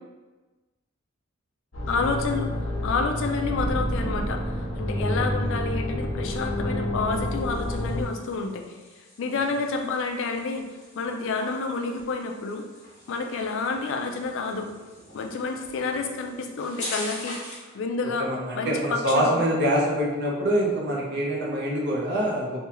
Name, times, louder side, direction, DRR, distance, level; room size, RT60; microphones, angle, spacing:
sound 1, 1.7-8.0, left 1 dB, 85° left, 1.0 m, -28 dB
voice 1, 1.9-8.7 9.2-10.7 10.9-12.7 13.1-14.7 15.1-17.4 17.7-19.4, left 4 dB, 65° left, 4 dB, 0.4 m, -29 dB
sound 2, 7.0-17.7, left 1 dB, 35° left, 1.2 m, -43 dB
voice 2, 18.2-22.7, equal, 55° right, -3 dB, 0.7 m, -25 dB
3.3 x 2.2 x 2.9 m, 1.2 s
head